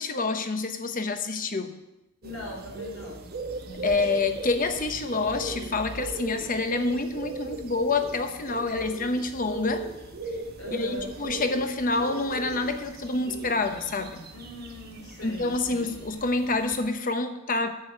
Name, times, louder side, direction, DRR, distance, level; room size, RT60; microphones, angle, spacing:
voice 1, 0.0-1.8 3.8-9.9 10.7-14.3 15.2-17.7, left 3 dB, 40° left, 8 dB, 0.9 m, -27 dB
voice 2, 2.2-3.3 3.6-3.9 10.6-11.1 14.3-15.9, left 1 dB, 85° left, 1 dB, 3.4 m, -41 dB
sound 1, 2.2-16.9, right 2 dB, 45° right, 1.1 m, -38 dB
9.8 x 7.1 x 8.1 m, 0.95 s
head